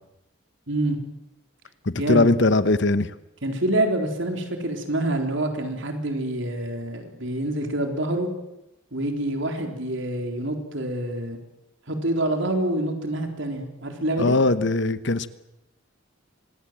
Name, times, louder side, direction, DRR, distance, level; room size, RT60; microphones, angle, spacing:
voice 1, 0.7-1.0 1.9-2.3 3.4-8.3 8.9-11.4 11.9-14.4, right 1 dB, 60° right, 4 dB, 4.1 m, -26 dB
voice 2, 1.8-3.1 14.2-15.3, left 2 dB, 55° left, 14 dB, 1.0 m, -20 dB
25.5 x 20.0 x 7.7 m, 0.90 s
head